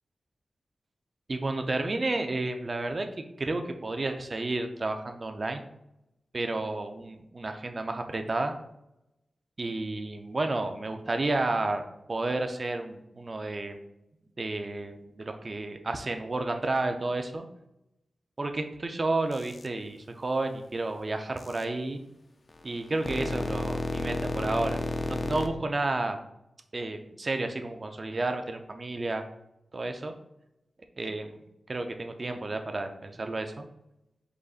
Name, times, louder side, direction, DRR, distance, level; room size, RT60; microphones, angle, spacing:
voice 1, 1.3-5.6 6.3-8.6 9.6-11.8 12.1-13.8 14.4-17.5 18.4-22.0 22.6-24.8 25.1-26.2 26.7-29.2 29.7-30.1 31.0-31.4 31.7-33.7, right 2 dB, 35° right, 6 dB, 0.4 m, -31 dB
sound 1, 19.3-19.7 21.4-21.6 22.5-25.5, left 2 dB, 35° left, 0.4 m, -32 dB
5.1 x 3.9 x 2.4 m, 0.86 s
wide cardioid pair, 130°, 0 cm